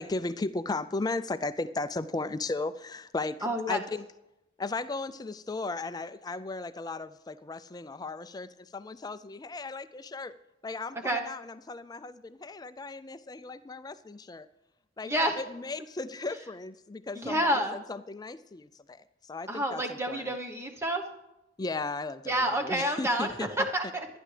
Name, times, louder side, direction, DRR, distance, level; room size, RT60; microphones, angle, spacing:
voice 1, 0.0-4.0 4.6-10.3 10.6-14.5 15.0-20.4 21.6-23.5, left 3 dB, 20° left, 12 dB, 0.4 m, -36 dB
voice 2, 3.4-3.8 11.0-11.2 15.0-15.4 17.1-17.7 19.5-21.0 22.3-24.1, right 1 dB, 15° right, 4 dB, 1.0 m, -29 dB
25.0 x 10.0 x 3.3 m, 0.94 s
head